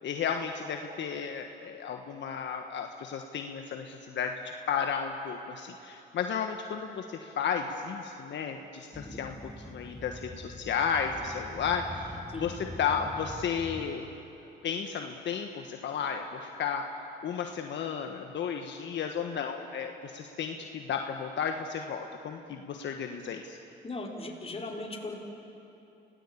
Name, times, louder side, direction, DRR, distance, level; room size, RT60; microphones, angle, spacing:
voice 1, 0.0-4.3 4.7-12.0 12.4-14.0 14.6-16.9 17.2-23.6, left 7 dB, 65° left, 4 dB, 1.4 m, -33 dB
sound 1, 8.9-13.9, left 1 dB, 5° left, 2.2 m, -44 dB
voice 2, 23.8-25.2, left 2 dB, 30° left, 0 dB, 4.3 m, -38 dB
28.5 x 18.0 x 8.6 m, 2.9 s
cardioid pair, 90°, 20 cm